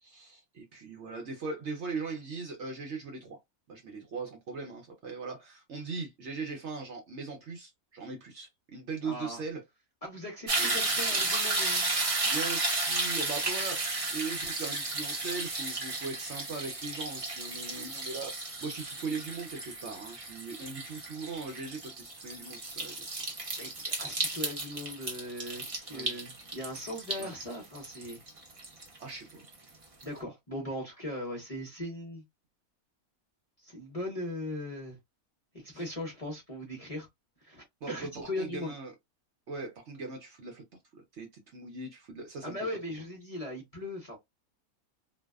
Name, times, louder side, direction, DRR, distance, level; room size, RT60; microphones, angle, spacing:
voice 1, 0.0-3.4 3.7-9.6 10.6-11.2 12.2-18.3 18.6-23.2 25.9-26.2 27.2-27.4 29.0-29.4 35.7-35.8 37.8-38.9 39.5-40.6 40.9-42.6, right 4 dB, 60° right, 0.9 m, -40 dB
voice 2, 9.0-9.4 10.0-11.9 23.6-28.2 30.0-32.2 33.6-35.0 35.5-37.1 37.4-38.7 42.4-44.2, left 1 dB, 30° left, 0.7 m, -39 dB
sound 1, 10.5-29.5 30.0-30.1, right 2 dB, 35° right, 0.5 m, -33 dB
2.6 x 2.1 x 2.3 m
omnidirectional pair, 1.6 m